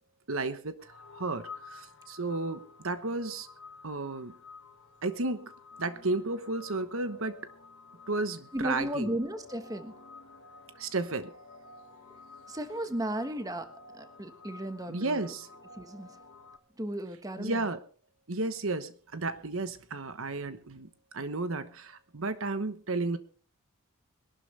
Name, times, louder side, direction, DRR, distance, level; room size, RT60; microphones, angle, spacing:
voice 1, 0.3-0.7 1.1-3.5 3.8-4.3 5.0-5.5 5.8-7.4 8.1-9.2 10.8-11.3 14.9-15.5 17.4-17.8 18.3-20.9 21.1-23.2, right 3 dB, 70° right, 11 dB, 1.1 m, -33 dB
sound 1, 0.8-16.6, left 4 dB, 60° left, 1.8 m, -52 dB
voice 2, 8.5-10.0 12.5-15.2 15.8-16.1 16.8-17.6, right 1 dB, 15° right, 8 dB, 1.4 m, -35 dB
22.0 x 12.0 x 3.3 m, 0.40 s
head